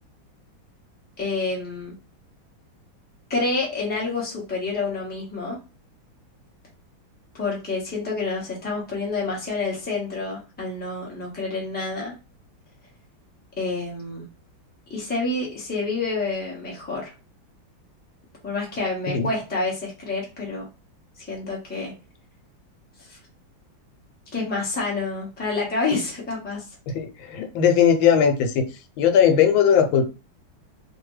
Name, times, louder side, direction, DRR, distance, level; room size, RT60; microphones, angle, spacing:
voice 1, 1.2-1.9 3.3-5.6 7.3-12.1 13.6-14.2 14.9-17.1 18.4-20.7 21.2-21.9 23.0-23.2 24.3-26.6, left 3 dB, 10° left, 0.7 m, -28 dB
voice 2, 26.9-28.6 29.0-30.0, left 8 dB, 85° left, 1.4 m, -18 dB
3.3 x 2.2 x 3.1 m
omnidirectional pair, 2.1 m